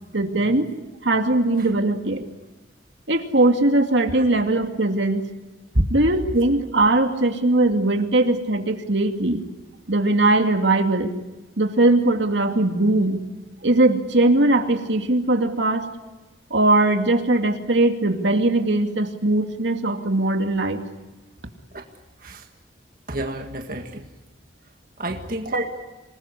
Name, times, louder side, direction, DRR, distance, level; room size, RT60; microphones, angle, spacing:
voice 1, 0.1-0.7 1.0-2.2 3.1-5.3 5.9-9.5 9.9-11.1 11.6-13.2 13.6-15.9 16.5-20.8, right 2 dB, 75° right, 5 dB, 2.4 m, -20 dB
voice 2, 23.1-24.1 25.0-25.8, right 1 dB, 50° right, 4 dB, 1.9 m, -27 dB
27.0 x 20.5 x 9.8 m, 1.1 s
head